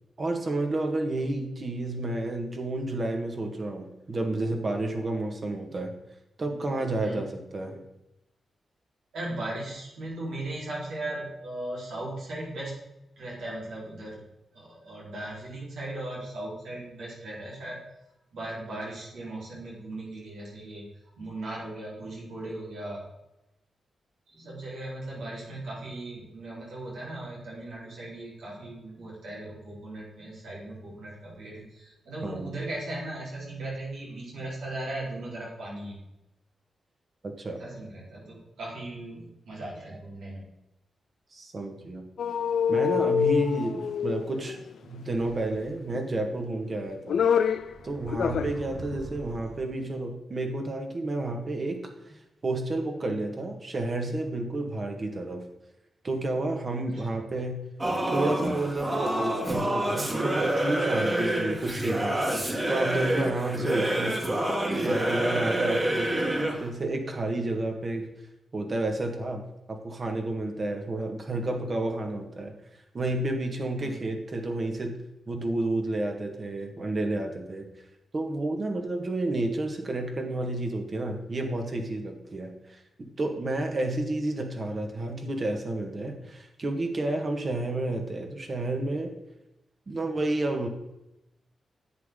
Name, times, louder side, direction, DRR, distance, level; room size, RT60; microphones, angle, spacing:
voice 1, 0.2-5.9 6.4-7.8 32.2-32.5 37.2-37.6 41.3-42.0 42.7-44.6 44.9-47.2 47.8-52.2 52.4-55.4 56.0-57.6 58.1-62.2 62.7-64.2 64.6-66.1 66.6-68.1 68.5-69.4 69.7-72.5 72.9-75.0 75.3-77.7 78.1-82.5 83.0-89.1 89.9-90.7, right 2 dB, 45° right, 3 dB, 1.8 m, -30 dB
voice 2, 9.1-12.8 13.2-14.2 14.5-17.8 18.3-20.9 21.2-23.0 24.3-36.0 37.6-40.4 56.9-57.2 73.7-74.0, right 1 dB, 90° right, -5 dB, 4.2 m, -38 dB
sound 1, 42.2-44.7 45.9-46.5 46.9-47.7 48.1-48.6 48.9-49.0, left 7 dB, 75° left, 0.5 m, -26 dB
sound 2, 47.4-49.9, right 2 dB, 70° right, 1.9 m, -43 dB
Singing / Musical instrument, 57.8-66.7, right 1 dB, 25° right, 2.0 m, -27 dB
10.5 x 8.1 x 3.8 m, 0.90 s
cardioid pair, 75°, 0 cm